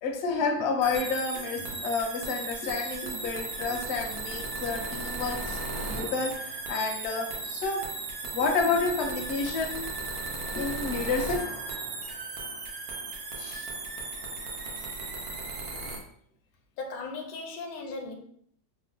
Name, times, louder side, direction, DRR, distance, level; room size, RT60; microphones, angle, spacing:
voice 1, 0.0-5.6 5.8-7.9 8.3-10.0 10.6-11.5 13.4-13.7, left 4 dB, 60° left, 0.8 m, -30 dB
sound 1, 0.8-16.0, right 3 dB, 90° right, 1.2 m, -36 dB
voice 2, 16.8-18.1, left 3 dB, 80° left, 1.1 m, -37 dB
3.0 x 2.0 x 3.8 m
omnidirectional pair, 1.5 m